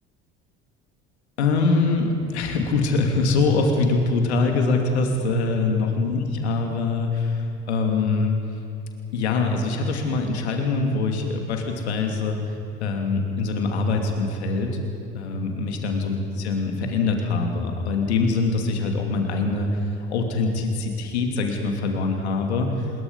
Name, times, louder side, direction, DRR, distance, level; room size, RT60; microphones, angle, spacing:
voice 1, 1.4-8.3 9.1-12.4 12.8-14.8 15.1-16.2 16.4-22.9, left 3 dB, 85° left, 3 dB, 2.6 m, -23 dB
25.5 x 21.5 x 5.5 m, 2.9 s
hypercardioid pair, 60°, 33 cm